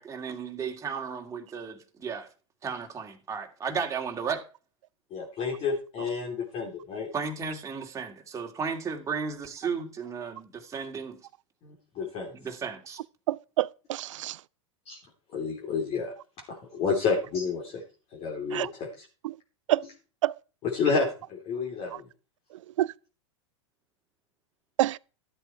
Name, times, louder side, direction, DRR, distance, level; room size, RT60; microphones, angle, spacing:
voice 1, 0.0-2.3 2.6-4.4 7.1-11.2 12.3-13.0, right 5 dB, 20° right, 2.4 m, -34 dB
voice 2, 5.1-7.1 11.6-12.3 14.9-15.0 15.3-16.1 16.5-17.8 18.1-19.0 20.6-22.1, left 5 dB, 40° left, 3.3 m, -30 dB
voice 3, 13.3-14.4 18.5-18.7 19.2-19.4 19.7-19.8 20.2-20.3 22.8-22.9 24.8-25.0, right 14 dB, 75° right, 0.5 m, -27 dB
13.0 x 8.1 x 4.5 m
hypercardioid pair, 115°, 17 cm